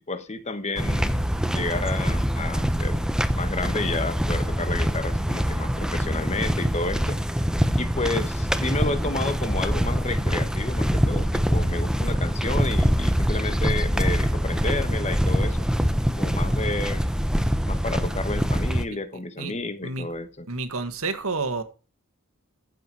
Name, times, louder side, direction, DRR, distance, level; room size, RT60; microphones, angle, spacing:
voice 1, 0.1-1.2 1.5-7.2 7.8-15.7 16.2-17.2 17.6-20.4, left 2 dB, 30° left, 1.2 m, -31 dB
sound 1, 0.8-18.9, equal, 5° right, 0.8 m, -24 dB
voice 2, 20.5-21.6, right 3 dB, 70° right, 1.9 m, -29 dB
15.0 x 8.2 x 4.6 m
head